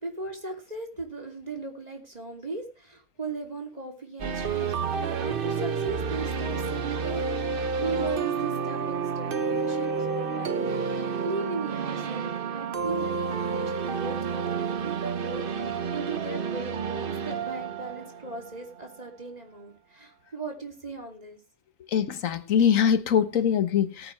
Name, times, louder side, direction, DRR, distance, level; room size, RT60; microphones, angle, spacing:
voice 1, 0.0-21.4, right 3 dB, 30° right, 3.0 m, -38 dB
sound 1, 4.2-19.1, right 5 dB, 45° right, 1.0 m, -30 dB
voice 2, 21.9-24.1, left 8 dB, 75° left, 1.5 m, -23 dB
18.0 x 9.3 x 3.3 m
omnidirectional pair, 1.4 m